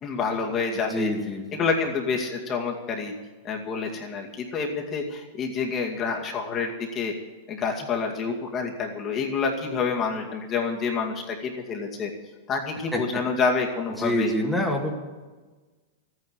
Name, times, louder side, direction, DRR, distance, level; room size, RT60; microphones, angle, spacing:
voice 1, 0.0-1.1 1.5-3.1 3.4-7.1 7.5-12.1 12.5-14.3, left 5 dB, 30° left, 0 dB, 2.3 m, -28 dB
voice 2, 0.9-1.6 12.9-13.2 14.0-14.9, left 1 dB, ahead, -2 dB, 2.2 m, -26 dB
13.0 x 9.6 x 8.2 m, 1.3 s
hypercardioid pair, 110°, 0 cm